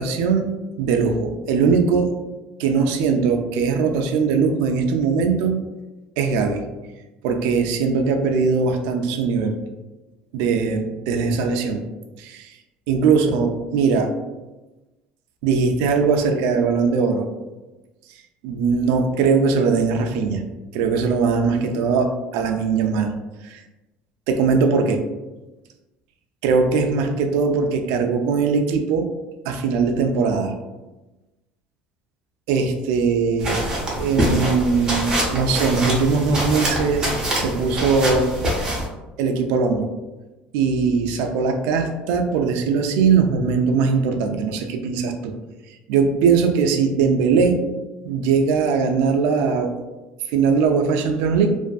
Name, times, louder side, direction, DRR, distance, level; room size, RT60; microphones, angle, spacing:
voice 1, 0.0-2.2 2.6-5.6 6.2-6.7 7.2-9.6 10.3-11.8 12.2-12.6 12.9-14.1 15.4-17.3 18.4-20.5 20.7-23.1 23.4-23.6 24.3-25.0 26.4-29.1 29.5-30.6 32.5-33.6 33.9-38.3 39.2-39.9 40.5-45.3 45.9-47.7 48.0-49.8 50.3-51.6, right 5 dB, 80° right, 4 dB, 0.3 m, -20 dB
sound 1, 33.4-38.9, right 1 dB, 20° right, 0.6 m, -24 dB
2.5 x 2.4 x 2.2 m, 1.1 s
cardioid pair, 160°, 4 cm